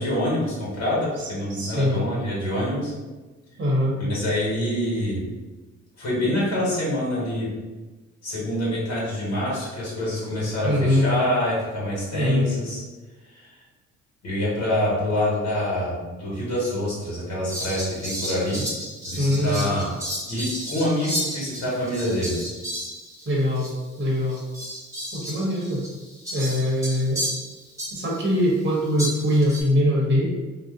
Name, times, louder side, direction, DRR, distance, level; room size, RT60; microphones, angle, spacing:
voice 1, 0.0-2.9 4.0-5.2 6.0-7.5 8.2-12.8 13.3-13.5 14.2-18.6 19.0-19.9 20.3-22.3, left 1 dB, 60° left, -7 dB, 1.4 m, -26 dB
voice 2, 1.5-2.0 3.6-4.0 10.6-11.1 12.1-12.5 19.1-19.7 23.2-23.7 24.0-24.4 25.1-25.8 26.3-27.2 27.9-30.2, left 1 dB, 35° right, -4 dB, 1.0 m, -22 dB
Fowl, 17.5-23.3 23.6-23.7 24.3-28.2 29.0-29.6, equal, 10° right, 1.1 m, -33 dB
2.6 x 2.3 x 3.6 m, 1.2 s
cardioid pair, 90°, 30 cm